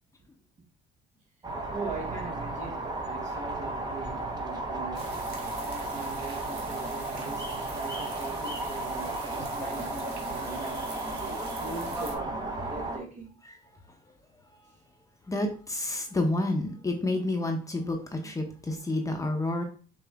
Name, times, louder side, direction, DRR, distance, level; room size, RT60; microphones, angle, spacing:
sound 1, 1.4-13.0, right 2 dB, 25° right, 1.0 m, -34 dB
voice 1, 1.7-5.2 5.6-10.0 10.2-10.9 11.3-13.3, right 3 dB, 50° right, 1.6 m, -41 dB
sound 2, 4.9-12.1, right 4 dB, 80° right, 1.3 m, -46 dB
voice 2, 15.3-19.6, left 2 dB, 20° left, 0.8 m, -29 dB
5.8 x 2.4 x 3.4 m
cardioid pair, 110°, 17 cm